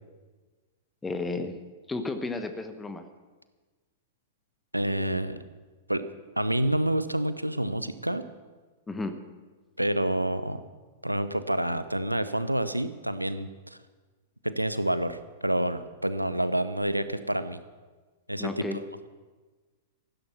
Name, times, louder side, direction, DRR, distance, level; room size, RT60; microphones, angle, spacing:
voice 1, 1.0-1.5 1.9-3.1 8.9-9.2 18.4-18.8, left 3 dB, 10° left, 8 dB, 1.2 m, -32 dB
voice 2, 4.7-5.4 5.9-6.1 6.4-8.3 9.8-10.6 11.0-13.8 14.4-17.6 18.3-18.8, right 1 dB, 90° right, 13 dB, 0.8 m, -28 dB
15.0 x 12.0 x 6.0 m, 1.3 s
figure-of-eight pair, 100°, 0 cm